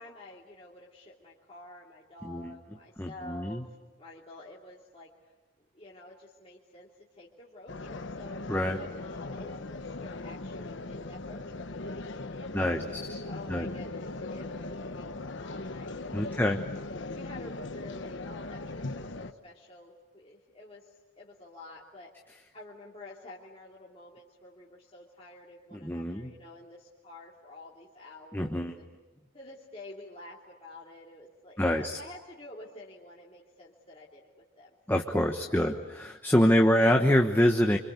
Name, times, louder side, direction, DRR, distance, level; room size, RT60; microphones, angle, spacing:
voice 1, 0.0-5.2 5.7-16.5 17.1-22.1 22.5-28.9 29.3-35.8 36.5-37.0, left 2 dB, 30° left, -5 dB, 2.9 m, -49 dB
voice 2, 2.2-2.6 3.0-3.6 8.5-8.8 12.5-12.8 13.1-13.2 13.5-13.7 16.1-16.6 25.8-26.3 28.3-28.7 31.6-32.0 34.9-37.8, equal, 10° left, 3 dB, 1.2 m, -25 dB
sound 1, 7.7-19.3, left 2 dB, 60° left, 1.2 m, -39 dB
27.5 x 25.5 x 8.3 m, 1.2 s
head